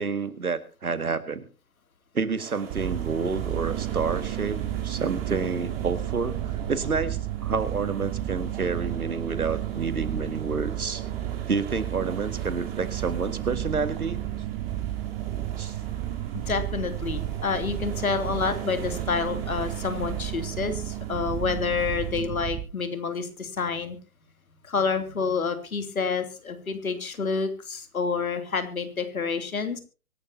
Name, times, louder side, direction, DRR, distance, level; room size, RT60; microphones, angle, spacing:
voice 1, 0.0-1.4 2.1-11.0 11.5-14.2 15.6-15.8, right 4 dB, 80° right, 13 dB, 2.0 m, -29 dB
sound 1, 2.4-22.1, right 6 dB, 40° right, 4.6 m, -42 dB
sound 2, 2.7-22.6, right 13 dB, 15° right, 0.7 m, -32 dB
voice 2, 16.5-24.0 24.7-29.8, left 5 dB, 70° left, 9 dB, 3.1 m, -28 dB
24.5 x 12.0 x 2.8 m, 0.33 s
figure-of-eight pair, 130°, 43 cm